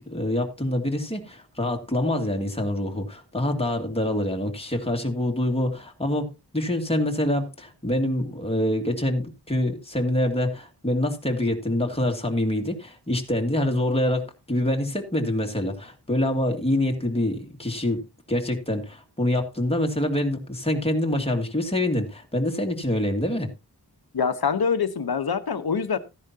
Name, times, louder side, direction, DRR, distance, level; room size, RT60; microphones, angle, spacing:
voice 1, 0.0-6.3 6.5-18.0 18.3-23.5, left 1 dB, 15° left, 2.2 m, -25 dB
voice 2, 24.1-26.0, left 6 dB, 65° left, 1.1 m, -24 dB
14.0 x 10.5 x 2.8 m
wide cardioid pair, 90°, 39 cm